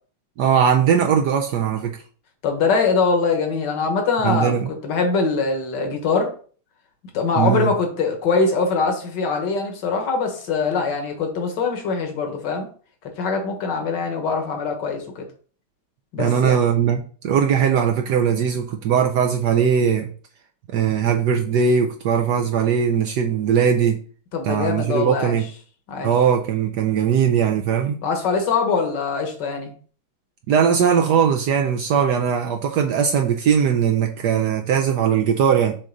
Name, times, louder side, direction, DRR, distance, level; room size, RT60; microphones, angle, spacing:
voice 1, 0.4-2.0 4.2-4.7 7.4-7.7 16.2-20.1 20.7-24.0 24.4-25.4 26.0-28.0 30.5-35.8, right 7 dB, 70° right, 4 dB, 1.0 m, -19 dB
voice 2, 2.4-6.3 7.1-12.7 13.2-15.3 16.1-16.6 24.3-25.4 25.9-26.1 28.0-29.7, left 4 dB, 60° left, 3 dB, 1.9 m, -23 dB
6.5 x 3.8 x 3.8 m, 0.42 s
omnidirectional pair, 2.2 m